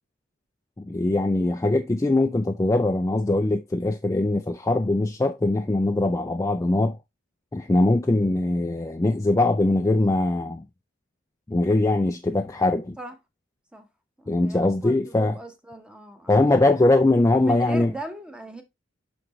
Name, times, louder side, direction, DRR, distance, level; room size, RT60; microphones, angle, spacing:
voice 1, 0.8-7.0 7.5-10.7 11.5-13.0 14.3-15.4 16.3-17.9, left 2 dB, 15° left, 0.4 m, -22 dB
voice 2, 14.2-16.8 17.4-18.6, right 1 dB, 5° right, 1.0 m, -39 dB
6.0 x 5.9 x 3.1 m
head